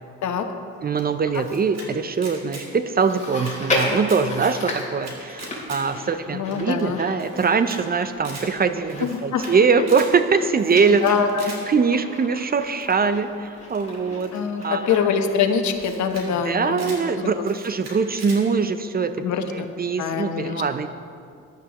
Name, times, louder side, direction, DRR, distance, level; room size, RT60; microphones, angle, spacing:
voice 1, 0.8-5.1 5.7-11.2 11.7-13.3 13.7-14.3 14.6-15.1 16.4-19.1 19.5-20.9, right 5 dB, 30° right, 10 dB, 0.5 m, -22 dB
Camera, 1.0-1.9 2.1-2.7 3.0-4.2 4.5-5.8 6.2-6.3 6.5-6.6 6.8-6.9 7.2-7.8 8.1-8.5 8.9-9.5 9.8-10.1 10.5-11.6 12.8-13.1 13.7-15.0 15.5-15.6 15.8-16.3 16.5-17.0 17.4-18.4, right 2 dB, 60° right, 2.7 m, -40 dB
Chewing mastication, 3.1-16.6 16.9-17.0 17.9-18.0, left 1 dB, 25° left, 3.2 m, -34 dB
voice 2, 6.3-7.0 9.0-9.4 11.0-11.5 14.3-16.9 17.2-17.4 19.2-19.7 20.0-20.6, left 6 dB, 70° left, 6 dB, 1.0 m, -24 dB
14.5 x 11.0 x 3.0 m, 2.4 s
cardioid pair, 90°, 30 cm